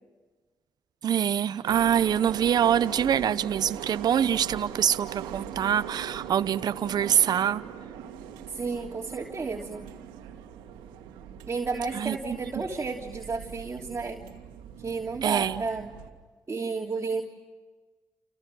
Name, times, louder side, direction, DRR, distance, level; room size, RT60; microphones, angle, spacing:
voice 1, 1.0-7.6 11.9-12.2 15.2-15.6, right 9 dB, 60° right, 0.8 m, -25 dB
sound 1, 1.6-16.1, right 9 dB, 90° right, 2.3 m, -41 dB
voice 2, 8.5-9.9 11.5-14.2 14.8-15.9 16.5-17.2, right 4 dB, 35° right, 3.2 m, -32 dB
29.5 x 28.5 x 6.3 m
supercardioid pair, 55°, 8 cm